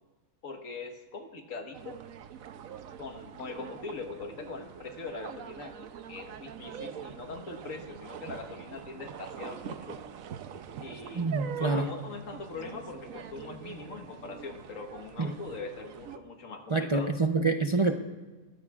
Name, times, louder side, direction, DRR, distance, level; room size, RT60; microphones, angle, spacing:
voice 1, 0.4-2.0 3.0-10.0 10.8-11.3 11.6-17.1, left 4 dB, 75° left, 4 dB, 1.8 m, -42 dB
sound 1, 1.7-16.2, right 8 dB, 90° right, 1.1 m, -43 dB
voice 2, 11.1-11.9 15.2-15.3 16.7-17.9, right 3 dB, 35° right, 4 dB, 0.5 m, -26 dB
21.5 x 15.5 x 2.4 m, 1.2 s
omnidirectional pair, 1.4 m